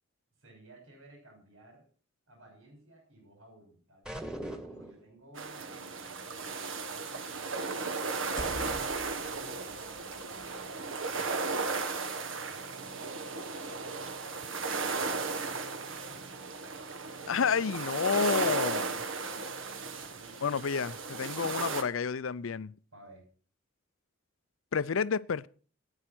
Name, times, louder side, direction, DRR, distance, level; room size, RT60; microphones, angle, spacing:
voice 1, 0.4-1.8 2.3-4.0 4.4-8.9 9.2-14.3 14.6-16.8 20.0-20.6 22.9-23.2, right 2 dB, 90° right, 6.3 m, -57 dB
sound 1, 4.0-5.1, right 1 dB, 5° right, 1.5 m, -40 dB
sound 2, 5.4-21.8, right 4 dB, 75° right, 1.6 m, -35 dB
sound 3, 8.2-12.0, right 1 dB, 45° right, 1.7 m, -47 dB
voice 2, 17.3-19.0 20.4-22.7 24.7-25.5, left 6 dB, 85° left, 0.5 m, -30 dB
12.5 x 9.9 x 6.1 m
head